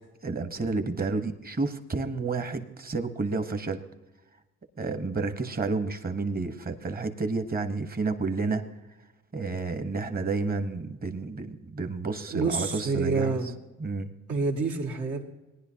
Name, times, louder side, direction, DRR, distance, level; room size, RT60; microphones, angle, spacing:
voice 1, 0.2-3.8 4.8-8.6 9.3-13.3 13.8-14.1, right 3 dB, 30° right, 9 dB, 1.2 m, -30 dB
voice 2, 12.3-13.5 14.3-15.2, right 4 dB, 75° right, 0 dB, 2.1 m, -27 dB
18.5 x 10.5 x 2.9 m, 1.1 s
cardioid pair, 90°, 30 cm